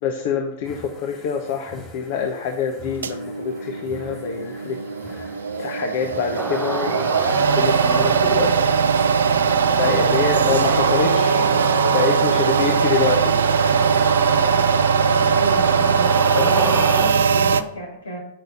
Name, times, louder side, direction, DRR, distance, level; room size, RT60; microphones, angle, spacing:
voice 1, 0.0-4.8 5.5-8.7 9.8-11.5 11.9-13.4 16.3-16.6, left 6 dB, 55° left, 3 dB, 1.1 m, -26 dB
sound 1, 0.6-14.9, left 1 dB, 20° left, 3.5 m, -45 dB
sound 2, 3.0-17.6, right 6 dB, 75° right, 0.5 m, -20 dB
sound 3, 6.4-17.1, equal, 5° left, 0.9 m, -29 dB
voice 2, 15.2-16.1 16.4-18.2, equal, 80° left, -2 dB, 3.3 m, -32 dB
6.7 x 6.3 x 7.0 m, 0.76 s
figure-of-eight pair, 95°, 0 cm